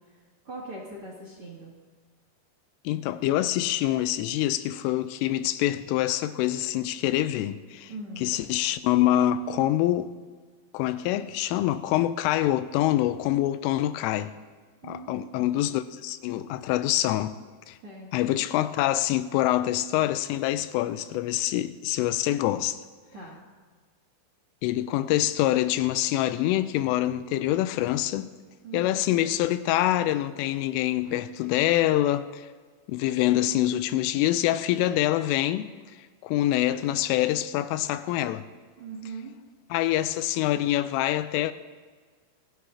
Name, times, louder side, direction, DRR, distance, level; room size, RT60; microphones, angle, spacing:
voice 1, 0.4-1.7 7.9-8.3 14.8-15.5 17.8-18.3 23.1-23.4 28.6-29.0 38.8-39.3, right 3 dB, 35° right, 2.4 m, -41 dB
voice 2, 2.9-7.9 8.2-10.1 10.7-14.3 14.8-17.4 17.7-17.8 18.1-22.8 24.6-28.3 28.7-32.5 32.9-35.7 36.2-38.5 39.7-41.5, left 13 dB, 85° left, 3.2 m, -25 dB
24.5 x 16.0 x 2.9 m
omnidirectional pair, 5.7 m